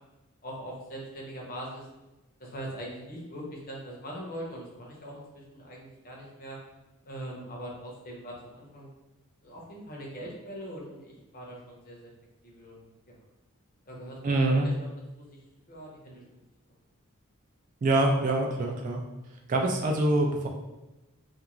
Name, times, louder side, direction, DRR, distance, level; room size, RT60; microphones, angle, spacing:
voice 1, 0.4-1.9 2.4-6.6 7.0-8.9 9.4-12.1 12.4-12.9 13.9-14.7 15.2-15.4 15.7-16.2, equal, 40° left, -2 dB, 0.7 m, -41 dB
voice 2, 14.2-14.7 17.8-19.0 19.5-20.5, right 2 dB, 40° right, 1 dB, 0.3 m, -25 dB
2.4 x 2.4 x 2.9 m, 1.0 s
head